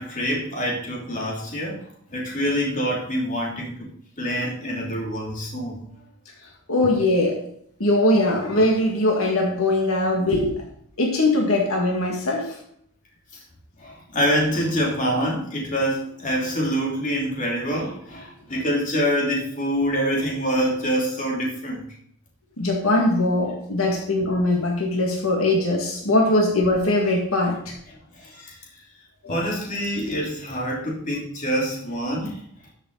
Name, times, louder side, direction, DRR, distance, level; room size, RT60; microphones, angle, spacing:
voice 1, 0.0-3.9 4.2-5.8 13.8-21.8 27.9-28.6 29.3-32.4, equal, 35° left, -3 dB, 3.0 m, -26 dB
voice 2, 6.7-7.4 7.8-10.5 11.0-12.5 22.6-27.6 29.3-29.4, left 1 dB, 70° left, -1 dB, 2.1 m, -21 dB
13.5 x 6.8 x 4.1 m, 0.67 s
head